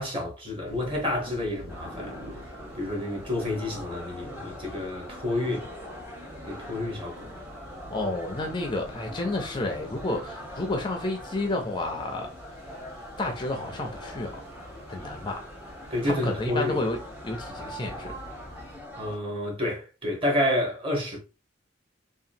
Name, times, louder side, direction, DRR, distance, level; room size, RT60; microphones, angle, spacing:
voice 1, 0.0-2.2 2.7-5.7 6.5-7.3 15.9-16.8 18.9-21.2, left 1 dB, 30° right, 1.0 m, -29 dB
sound 1, 0.6-18.8, equal, 60° right, 1.4 m, -48 dB
sound 2, 1.7-19.2, equal, 10° right, 0.7 m, -42 dB
voice 2, 7.9-12.3 13.2-14.4 14.9-15.4 16.0-17.0 17.2-18.2, left 2 dB, 25° left, 0.4 m, -30 dB
2.8 x 2.3 x 2.6 m
head